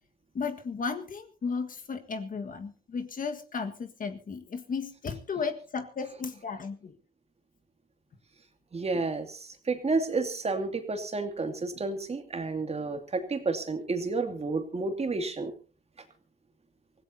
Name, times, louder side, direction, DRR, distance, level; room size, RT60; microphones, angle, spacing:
voice 1, 0.3-6.9, left 5 dB, 45° left, 7 dB, 1.7 m, -34 dB
voice 2, 8.7-15.5, right 3 dB, 30° right, 6 dB, 2.5 m, -31 dB
24.5 x 16.0 x 2.8 m, 0.36 s
cardioid pair, 90°, 20 cm